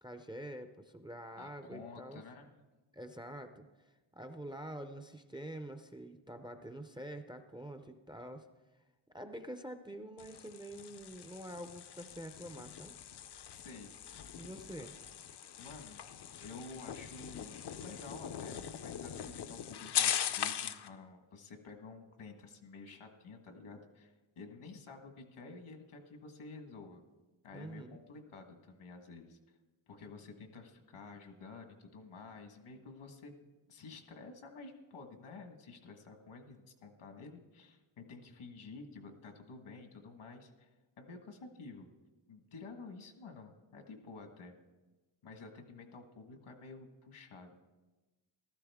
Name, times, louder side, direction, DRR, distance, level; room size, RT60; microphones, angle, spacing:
voice 1, 0.0-2.2 2.9-3.6 4.1-8.5 9.1-13.0 14.3-15.0 27.5-28.0, right 1 dB, 10° right, 8 dB, 0.4 m, -46 dB
voice 2, 1.4-2.5 13.5-14.0 15.6-16.1 16.4-27.0 27.4-29.4 29.9-33.3 33.7-40.7 41.0-41.9 42.3-44.5 45.2-47.5, left 4 dB, 75° left, 6 dB, 1.6 m, -51 dB
sound 1, 10.2-20.9, left 9 dB, 55° left, 0.6 m, -40 dB
15.0 x 13.0 x 3.5 m, 1.2 s
wide cardioid pair, 120°, 49 cm